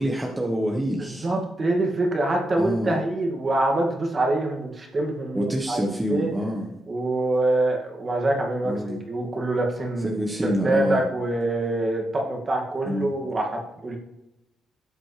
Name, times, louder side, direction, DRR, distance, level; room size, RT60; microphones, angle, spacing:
voice 1, 0.0-1.3 2.6-3.0 5.3-6.7 8.6-9.0 10.0-11.0 12.9-13.1, equal, 10° right, 0 dB, 1.3 m, -27 dB
voice 2, 1.0-5.8 6.1-6.3 6.9-14.0, right 2 dB, 35° right, 1 dB, 2.2 m, -25 dB
12.5 x 7.5 x 3.3 m, 0.89 s
cardioid pair, 90°, 0 cm